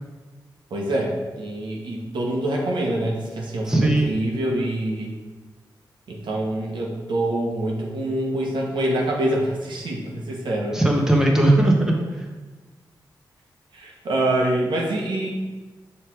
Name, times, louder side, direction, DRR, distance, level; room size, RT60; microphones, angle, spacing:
voice 1, 0.7-5.1 6.1-10.8 11.2-11.3 13.7-15.3, right 1 dB, 85° right, -1 dB, 1.1 m, -25 dB
voice 2, 3.7-4.2 10.7-12.2, right 1 dB, 5° right, 0 dB, 1.0 m, -19 dB
6.3 x 3.3 x 4.5 m, 1.3 s
cardioid pair, 80°, 8 cm